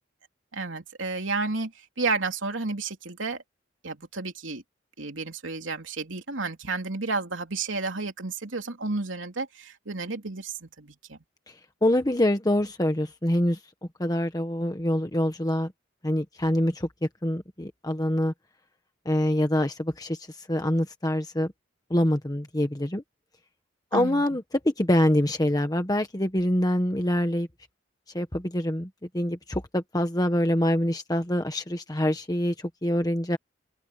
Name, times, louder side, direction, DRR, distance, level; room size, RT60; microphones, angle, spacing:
voice 1, 0.5-1.7 2.0-3.4 3.8-4.6 5.0-11.2 23.9-24.2, right 3 dB, 85° right, 3.2 m, -31 dB
voice 2, 11.8-13.6 14.0-15.7 16.0-16.9 17.2-18.3 19.0-21.5 21.9-23.0 23.9-27.5 28.1-33.4, left 1 dB, 20° left, 1.3 m, -25 dB
open air
head